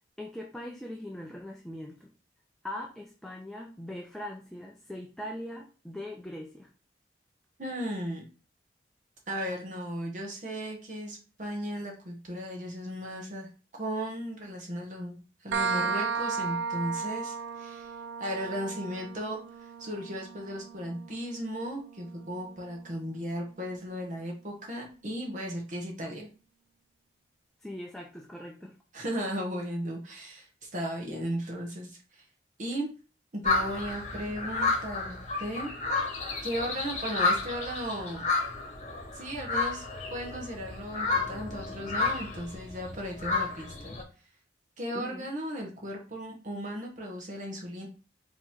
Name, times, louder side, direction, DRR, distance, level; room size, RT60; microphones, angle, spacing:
voice 1, 0.2-2.1 2.6-6.7 27.6-28.7 44.9-45.3, left 1 dB, ahead, 0 dB, 0.5 m, -41 dB
voice 2, 7.6-8.2 9.3-13.5 13.8-15.1 15.4-17.9 18.2-19.4 19.8-26.3 28.9-32.2 32.6-32.9 33.3-35.7 36.4-38.2 39.1-39.8 40.1-43.9 44.8-47.9, equal, 45° right, 0 dB, 1.1 m, -36 dB
sound 1, 15.5-22.9, right 5 dB, 90° right, 0.4 m, -35 dB
sound 2, 33.4-44.0, left 3 dB, 40° left, 1.1 m, -31 dB
5.0 x 3.0 x 3.6 m, 0.35 s
head